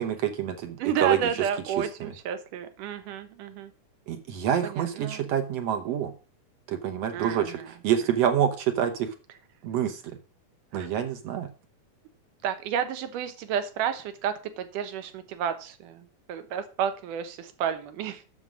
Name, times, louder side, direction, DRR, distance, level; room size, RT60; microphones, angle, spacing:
voice 1, 0.0-1.4 2.0-2.1 4.1-6.1 6.7-9.1 9.6-10.2 10.7-11.5, right 9 dB, 65° right, 7 dB, 1.8 m, -27 dB
voice 2, 0.8-3.7 4.6-5.2 7.1-7.7 10.7-10.9 12.4-18.2, right 8 dB, 80° right, 9 dB, 2.6 m, -31 dB
7.3 x 6.9 x 6.2 m, 0.35 s
omnidirectional pair, 3.7 m